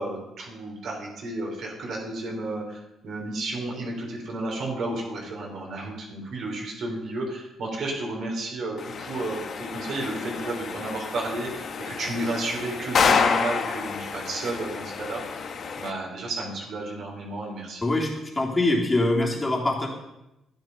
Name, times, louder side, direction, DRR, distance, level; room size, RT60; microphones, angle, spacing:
voice 1, 0.0-15.5 15.8-17.8, right 2 dB, 65° right, -1 dB, 3.8 m, -32 dB
sound 1, 8.8-15.9, left 5 dB, 55° left, 1.2 m, -28 dB
voice 2, 17.8-19.9, left 2 dB, 20° left, -2 dB, 3.4 m, -24 dB
12.5 x 9.6 x 5.4 m, 0.91 s
cardioid pair, 90°, 0 cm